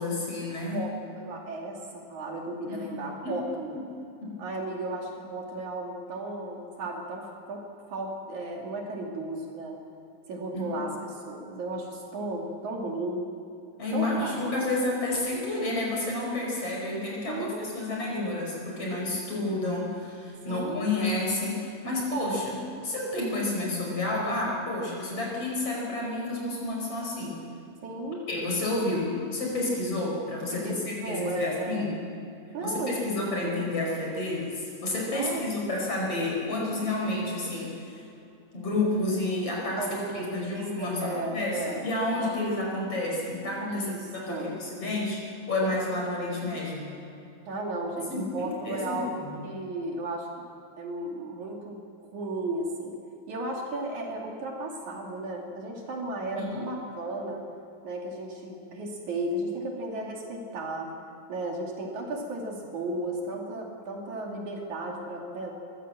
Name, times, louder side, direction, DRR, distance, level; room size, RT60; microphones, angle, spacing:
voice 1, 0.0-0.8 2.7-3.4 3.7-3.8 4.2-4.3 10.5-10.6 13.8-27.4 28.3-31.9 32.6-38.0 38.5-43.9 44.1-45.2 45.5-47.0 48.1-49.4 56.3-56.6, left 2 dB, 45° left, -2 dB, 6.2 m, -30 dB
voice 2, 0.7-3.8 4.4-7.6 7.9-9.8 10.3-13.3 13.9-14.6 17.3-17.7 20.5-20.8 27.8-28.2 30.5-31.9 32.5-33.5 35.1-35.4 39.8-41.8 42.2-42.4 43.7-44.5 47.5-50.5 50.8-52.9 53.3-57.4 57.8-60.9 61.3-65.5, right 2 dB, 65° right, 0 dB, 3.7 m, -34 dB
23.0 x 14.5 x 7.7 m, 2.8 s
omnidirectional pair, 3.8 m